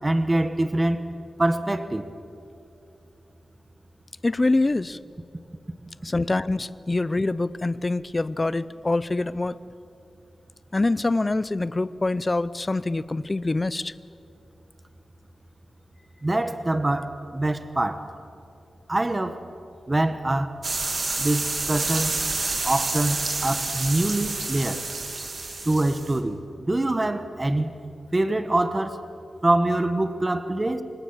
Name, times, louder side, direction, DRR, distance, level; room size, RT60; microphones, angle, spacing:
voice 1, 0.0-1.1 1.4-2.0 16.2-18.1 18.9-19.4 19.9-20.6 21.2-22.2 22.6-24.9 25.6-27.7 28.1-29.0 29.4-30.8, right 1 dB, 15° right, 1.1 m, -24 dB
voice 2, 4.2-5.0 6.0-9.6 10.7-13.9, left 2 dB, 20° left, 0.5 m, -25 dB
sound 1, 20.6-26.2, right 3 dB, 40° right, 2.5 m, -29 dB
27.5 x 25.5 x 7.3 m
wide cardioid pair, 175°, 0 cm